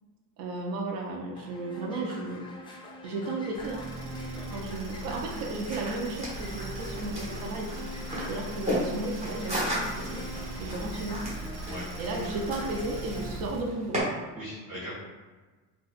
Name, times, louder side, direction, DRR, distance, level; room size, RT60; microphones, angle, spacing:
voice 1, 0.4-2.4 3.0-3.9 4.5-7.7 8.3-10.2 10.6-11.2 12.0-14.0, right 2 dB, 75° right, 0 dB, 0.7 m, -34 dB
sound 1, 1.4-13.3, left 1 dB, 15° left, 0.5 m, -44 dB
sound 2, 3.5-13.7, right 1 dB, 90° right, 1.1 m, -39 dB
voice 2, 4.3-4.6 11.6-11.9 14.3-14.9, equal, 45° right, -10 dB, 1.1 m, -40 dB
sound 3, 5.6-14.0, equal, 20° right, 1.2 m, -36 dB
4.0 x 2.4 x 2.4 m, 1.3 s
cardioid pair, 125°, 35 cm